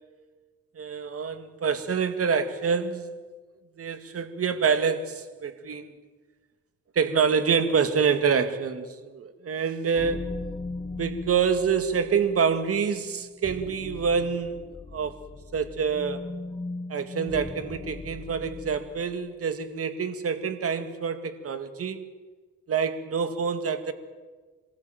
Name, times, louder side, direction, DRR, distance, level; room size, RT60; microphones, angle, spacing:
voice 1, 0.8-3.2 3.8-5.9 7.0-10.5 10.9-14.6 14.9-15.2 15.5-16.3 16.9-22.0 22.7-23.9, right 6 dB, 50° right, 2.2 m, -26 dB
sound 1, 10.0-19.1, left 3 dB, 15° left, 0.9 m, -39 dB
26.0 x 20.0 x 9.3 m
cardioid pair, 90°, 30 cm